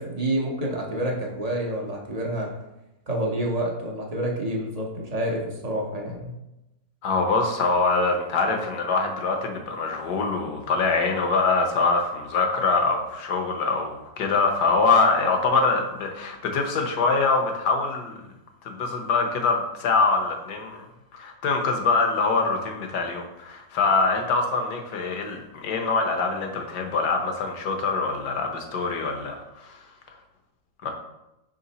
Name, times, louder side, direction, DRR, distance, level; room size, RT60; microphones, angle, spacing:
voice 1, 0.0-2.5 3.1-6.3, right 1 dB, 40° right, -1 dB, 0.5 m, -28 dB
voice 2, 7.0-18.2 18.6-20.8 21.1-29.8 30.8-30.9, left 4 dB, 65° left, 3 dB, 1.3 m, -24 dB
6.1 x 3.9 x 4.1 m, 0.93 s
omnidirectional pair, 2.0 m